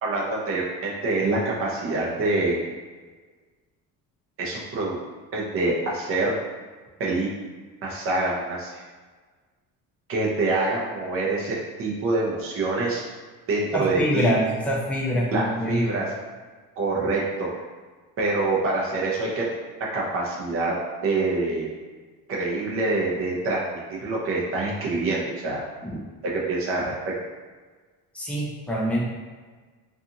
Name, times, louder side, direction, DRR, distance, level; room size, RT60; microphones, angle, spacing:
voice 1, 0.0-2.6 4.4-5.0 5.3-6.3 7.0-7.3 7.8-8.8 10.1-13.0 13.5-14.3 15.3-16.1 16.8-17.5 18.2-19.5 19.9-20.8 21.0-21.7 22.3-25.6 26.2-27.1, right 2 dB, 40° right, -3 dB, 0.6 m, -25 dB
voice 2, 13.7-16.0 25.8-25.9 28.1-29.0, equal, 5° left, -5 dB, 0.3 m, -25 dB
2.5 x 2.4 x 2.7 m, 1.4 s
cardioid pair, 155°, 35 cm